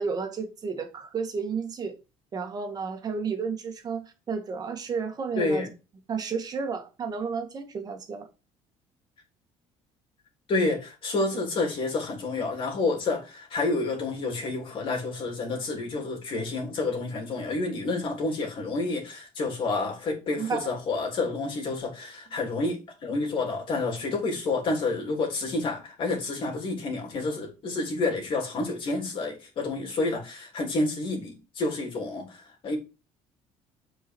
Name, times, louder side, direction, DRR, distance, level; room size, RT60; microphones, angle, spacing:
voice 1, 0.0-1.9 2.3-5.7 6.1-8.3 20.4-20.7, right 5 dB, 35° right, 1.9 m, -32 dB
voice 2, 5.4-5.7 10.5-32.8, left 3 dB, 45° left, 3.3 m, -29 dB
8.3 x 4.9 x 4.6 m
cardioid pair, 135°, 12 cm